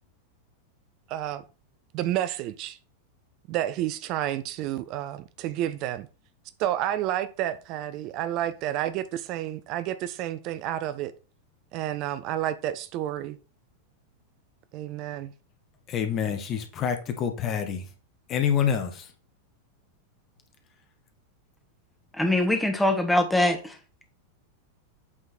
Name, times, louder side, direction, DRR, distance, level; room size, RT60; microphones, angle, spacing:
voice 1, 1.1-1.4 1.9-2.8 3.5-6.1 6.6-11.1 11.7-13.4 14.7-15.3, right 12 dB, 40° right, 0.5 m, -30 dB
voice 2, 15.9-17.9 18.3-19.1, left 8 dB, 30° left, 1.3 m, -27 dB
voice 3, 22.2-23.7, left 1 dB, 5° left, 1.4 m, -23 dB
8.6 x 3.8 x 4.3 m
figure-of-eight pair, 90°, 0 cm